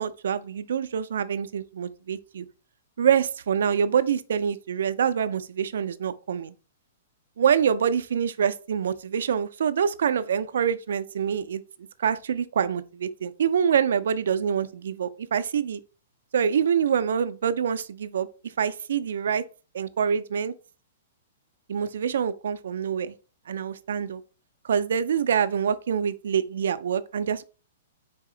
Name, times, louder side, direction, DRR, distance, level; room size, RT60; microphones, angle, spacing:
voice 1, 0.0-2.5 3.0-6.5 7.4-11.6 12.0-15.8 16.3-18.3 18.6-19.4 19.7-20.5 21.7-23.1 23.5-24.2 24.6-27.4, right 7 dB, 80° right, 0.4 m, -25 dB
4.0 x 2.8 x 3.7 m
hypercardioid pair, 170°, 0 cm